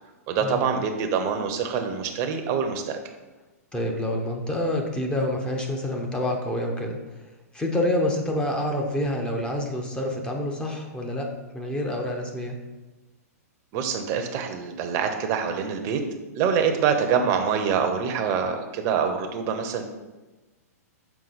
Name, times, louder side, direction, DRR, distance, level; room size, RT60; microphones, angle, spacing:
voice 1, 0.3-3.0 13.7-16.0 16.4-19.8, right 6 dB, 35° right, 5 dB, 0.8 m, -25 dB
voice 2, 3.7-7.2 7.5-12.6, left 1 dB, 10° left, 1 dB, 0.8 m, -27 dB
5.9 x 4.4 x 4.1 m, 1.1 s
hypercardioid pair, 130°, 9 cm